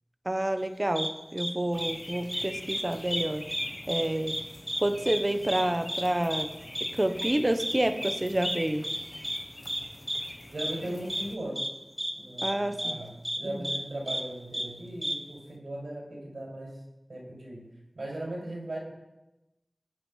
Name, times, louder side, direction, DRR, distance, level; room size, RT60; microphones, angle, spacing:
voice 1, 0.2-3.5 3.9-4.4 4.8-6.5 6.8-8.9 12.4-13.0 13.4-13.7, right 1 dB, 30° right, 9 dB, 1.3 m, -29 dB
sound 1, 1.0-1.1 1.4-1.5 1.8-1.9 2.3-2.8 3.1-3.2 3.5-4.0 4.3-4.4 4.7-4.8 5.1-5.2 5.5-5.6 5.9-6.0 6.3-6.4 6.7-6.9 7.2-7.3 7.6-7.7 8.0-8.2 8.4-8.6 8.8-9.0 9.2-9.4 9.7-9.8 10.1-10.2 10.6-10.7 11.1-11.2 11.6-11.7 12.0-12.1 12.4-12.5 12.8-12.9 13.2-13.4 13.6-13.8 14.1-14.2 14.5-14.6 15.0-15.1, equal, 10° right, 2.3 m, -31 dB
sound 2, 1.7-11.4, left 1 dB, 25° left, 1.4 m, -43 dB
voice 2, 10.5-11.7 12.2-16.7 17.1-17.7 17.9-18.8, right 1 dB, 90° right, -3 dB, 6.3 m, -38 dB
20.0 x 9.4 x 5.8 m, 1.0 s
wide cardioid pair, 45°, 0 cm